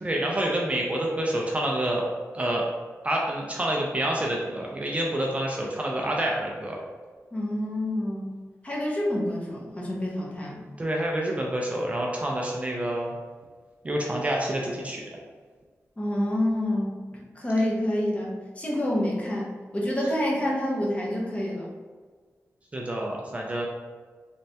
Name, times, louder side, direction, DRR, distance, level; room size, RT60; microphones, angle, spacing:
voice 1, 0.0-2.0 2.3-2.7 3.0-6.8 10.8-13.1 13.8-15.0 22.7-23.7, right 1 dB, 25° right, -2 dB, 0.4 m, -27 dB
voice 2, 7.3-8.3 8.6-10.7 16.0-21.7, left 1 dB, 25° left, -3 dB, 0.7 m, -28 dB
3.2 x 3.2 x 2.7 m, 1.5 s
wide cardioid pair, 160°, 6 cm